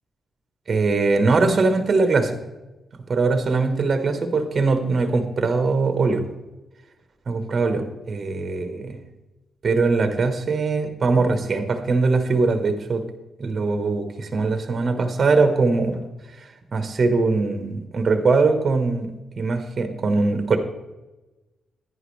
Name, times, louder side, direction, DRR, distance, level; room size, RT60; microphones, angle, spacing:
voice 1, 0.7-2.4 3.1-6.2 7.3-9.0 9.6-13.0 13.4-16.0 16.4-20.6, right 3 dB, 45° right, 7 dB, 1.3 m, -21 dB
11.0 x 9.8 x 3.3 m, 1.1 s
cardioid pair, 90°, 0 cm